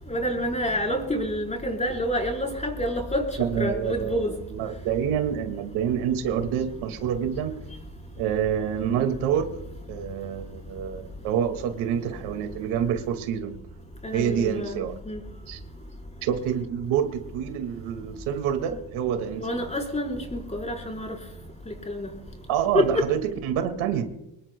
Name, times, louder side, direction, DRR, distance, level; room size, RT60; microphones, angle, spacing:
voice 1, 0.1-3.3 3.6-4.3 14.0-15.2 19.4-21.2 21.7-22.1 22.7-23.1, equal, 15° left, 4.3 m, -28 dB
voice 2, 3.4-7.5 8.2-9.5 9.9-13.5 14.1-14.9 15.5-15.6 16.2-19.7 22.5-24.1, right 9 dB, 75° right, 2.2 m, -27 dB
25.0 x 20.5 x 2.2 m
cardioid pair, 105°, 49 cm